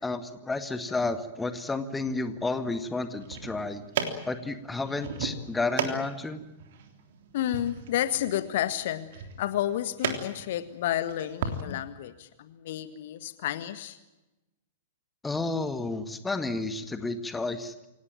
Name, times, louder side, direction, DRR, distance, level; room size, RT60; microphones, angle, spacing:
voice 1, 0.0-3.8 4.3-6.4 15.2-17.7, left 3 dB, 10° left, 10 dB, 2.0 m, -31 dB
sound 1, 3.1-11.6, right 6 dB, 55° right, 3.3 m, -36 dB
voice 2, 7.3-14.0, left 12 dB, 55° left, 12 dB, 1.7 m, -31 dB
28.0 x 18.0 x 9.0 m, 0.98 s
figure-of-eight pair, 100°, 0 cm